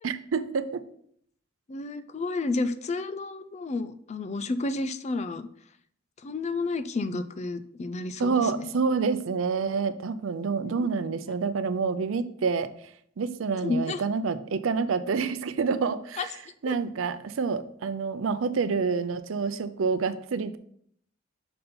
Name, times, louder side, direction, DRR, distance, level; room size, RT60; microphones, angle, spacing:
voice 1, 0.0-0.8 8.2-12.7 13.2-16.3 16.6-20.6, right 5 dB, 85° right, 12 dB, 0.5 m, -28 dB
voice 2, 1.7-5.5 6.2-8.7 10.6-10.9 13.6-14.0 16.2-16.3 16.7-16.8, left 3 dB, 35° left, 12 dB, 0.4 m, -31 dB
5.4 x 5.3 x 4.3 m, 0.64 s
head